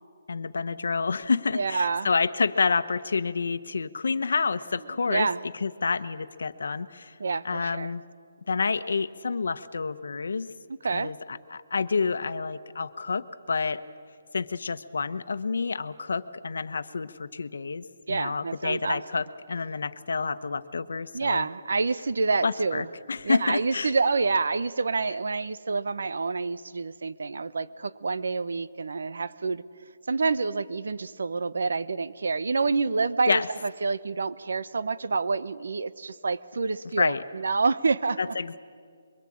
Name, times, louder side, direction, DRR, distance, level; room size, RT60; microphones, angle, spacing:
voice 1, 0.3-5.3 5.6-7.1 7.4-8.0 8.5-10.5 10.9-13.8 14.3-21.4 22.4-23.9 33.3-33.5 37.0-37.2 38.2-38.6, left 4 dB, 70° left, 11 dB, 1.0 m, -28 dB
voice 2, 1.5-2.1 5.1-5.4 7.2-7.9 10.8-11.1 18.1-19.2 21.1-22.9 23.2-29.6 30.1-38.4, right 4 dB, 70° right, 15 dB, 0.9 m, -28 dB
23.5 x 23.0 x 8.7 m, 2.1 s
hypercardioid pair, 175°, 0 cm